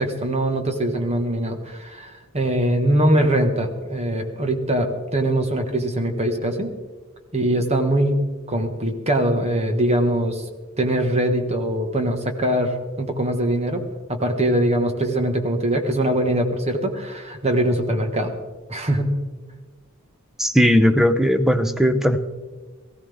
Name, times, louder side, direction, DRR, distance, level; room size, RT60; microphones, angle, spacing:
voice 1, 0.0-6.7 7.3-8.2 8.5-10.4 10.8-13.8 14.1-18.3 18.7-19.2, right 1 dB, 30° right, 4 dB, 1.6 m, -22 dB
voice 2, 20.4-22.2, equal, ahead, 9 dB, 0.7 m, -17 dB
18.5 x 15.0 x 3.6 m, 1.3 s
head